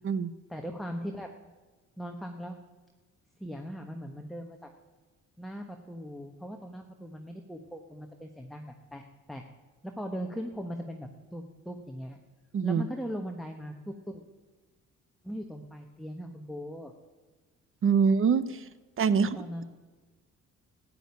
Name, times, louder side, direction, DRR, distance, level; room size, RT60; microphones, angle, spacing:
voice 1, 0.5-1.3 2.0-2.6 3.4-4.7 5.4-9.0 9.3-9.4 9.8-12.2 12.6-13.7 14.1-14.2 15.2-16.9 19.1-19.6, equal, ahead, 3 dB, 1.2 m, -39 dB
voice 2, 17.8-18.6 19.0-19.4, right 6 dB, 45° right, 16 dB, 0.8 m, -24 dB
13.0 x 8.9 x 9.6 m, 1.3 s
cardioid pair, 90°, 30 cm